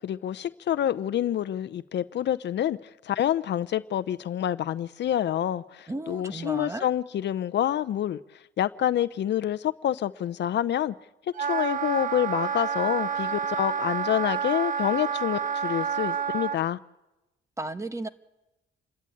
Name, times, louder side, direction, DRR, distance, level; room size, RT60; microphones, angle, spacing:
voice 1, 0.0-2.8 3.0-8.2 8.6-10.9 11.4-16.8, left 11 dB, 60° left, 0.7 m, -27 dB
voice 2, 5.9-6.9 17.6-18.1, right 2 dB, 15° right, 1.2 m, -34 dB
Wind instrument woodwind instrument, 11.3-16.6, right 7 dB, 40° right, 0.7 m, -29 dB
28.0 x 13.0 x 8.7 m
cardioid pair, 90°, 20 cm